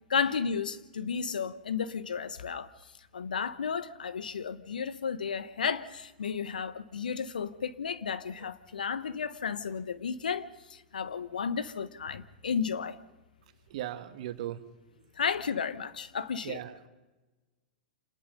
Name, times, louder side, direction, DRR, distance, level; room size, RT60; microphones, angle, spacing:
voice 1, 0.1-2.7 3.1-13.0 15.2-16.6, left 6 dB, 75° left, 1.2 m, -33 dB
voice 2, 13.7-14.6 16.4-16.8, right 12 dB, 55° right, 1.7 m, -37 dB
28.0 x 19.5 x 5.4 m
figure-of-eight pair, 100°, 5 cm